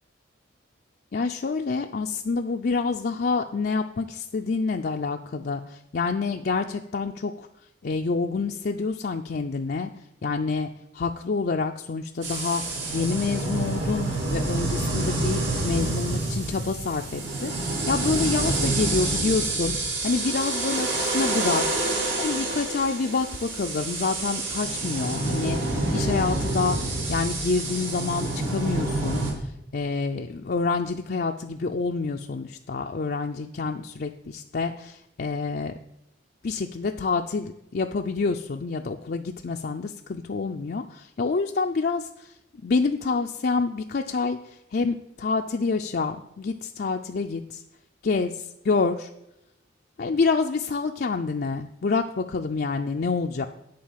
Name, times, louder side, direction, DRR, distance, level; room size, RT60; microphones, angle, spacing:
voice 1, 1.1-7.5 7.8-9.9 10.2-10.7 10.9-12.6 12.9-21.8 22.2-35.7 36.4-42.3 42.6-47.6 48.0-49.1 50.0-53.5, left 4 dB, 55° left, 3 dB, 0.4 m, -27 dB
sound 1, 12.2-29.3, right 2 dB, 75° right, 2.6 m, -27 dB
10.5 x 4.4 x 7.3 m, 0.81 s
head